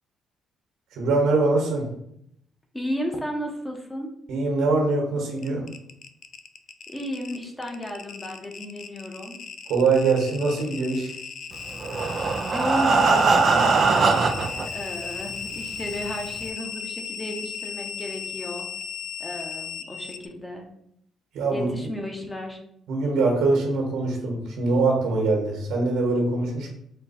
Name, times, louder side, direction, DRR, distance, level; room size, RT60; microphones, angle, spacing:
voice 1, 0.9-1.9 4.3-5.7 9.7-11.1 21.3-21.7 22.9-26.7, right 3 dB, 85° right, 1 dB, 1.5 m, -23 dB
voice 2, 2.7-4.1 6.9-9.4 12.5-18.7 19.2-20.7 21.5-22.6, equal, 15° left, 2 dB, 0.9 m, -33 dB
sound 1, 5.4-20.3, left 6 dB, 60° left, 0.4 m, -36 dB
Breathing, 11.7-14.7 15.4-15.5 15.9-16.0 16.4-16.5, right 4 dB, 50° right, 0.3 m, -21 dB
4.3 x 2.3 x 4.3 m, 0.72 s
cardioid pair, 90°, 0 cm